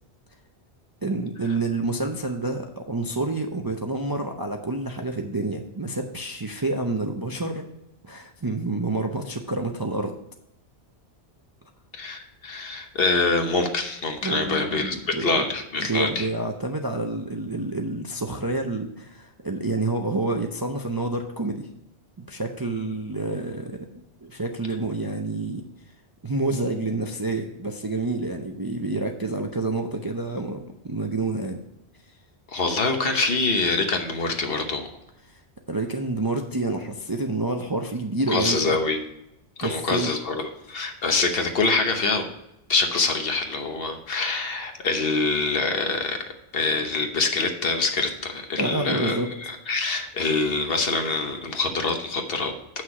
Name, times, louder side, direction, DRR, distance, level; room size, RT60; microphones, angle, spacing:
voice 1, 1.0-7.6 8.0-10.1 14.2-15.4 15.8-21.7 22.2-23.9 24.2-25.6 26.2-31.6 35.7-38.8 39.6-40.1 48.6-49.3, right 2 dB, 25° right, 3 dB, 0.5 m, -28 dB
voice 2, 11.9-16.3 32.5-34.9 38.3-39.0 39.6-42.3 42.7-52.5, left 3 dB, 60° left, 5 dB, 1.2 m, -25 dB
7.9 x 6.1 x 4.8 m, 0.82 s
omnidirectional pair, 1.1 m